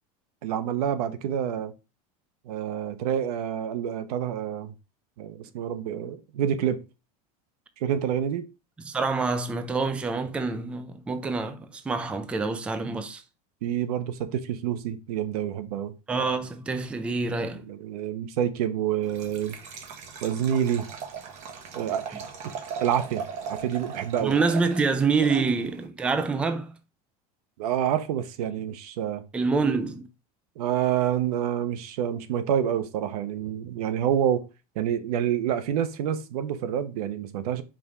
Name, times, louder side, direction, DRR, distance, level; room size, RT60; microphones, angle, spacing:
voice 1, 0.4-1.7 2.5-4.7 5.2-6.8 7.8-8.5 13.6-15.9 17.7-19.6 20.2-20.9 21.7-22.2 22.8-24.3 27.6-29.2 30.6-34.5 34.8-37.6, right 10 dB, 90° right, 1.0 m, -27 dB
voice 2, 8.8-13.2 16.1-17.6 24.2-26.8 29.3-30.1, right 4 dB, 5° right, 0.4 m, -26 dB
Liquid, 19.0-25.9, right 6 dB, 40° right, 1.2 m, -39 dB
5.2 x 3.5 x 5.1 m
supercardioid pair, 170°, 19 cm